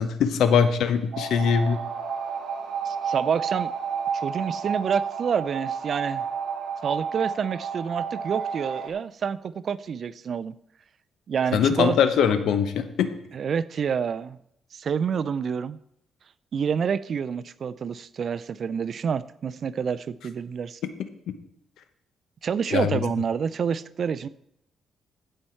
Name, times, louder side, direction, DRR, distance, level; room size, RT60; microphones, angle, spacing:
voice 1, 0.0-1.8 11.5-13.1 22.7-23.0, left 7 dB, 80° left, 10 dB, 0.9 m, -22 dB
sound 1, 1.1-8.9, right 6 dB, 75° right, 1.7 m, -31 dB
voice 2, 2.9-3.7 4.1-6.2 6.8-10.5 11.3-12.0 13.3-14.4 14.7-15.8 16.5-20.8 22.4-24.3, right 7 dB, 50° right, 16 dB, 0.4 m, -28 dB
15.0 x 5.7 x 4.5 m, 0.75 s
cardioid pair, 100°, 0 cm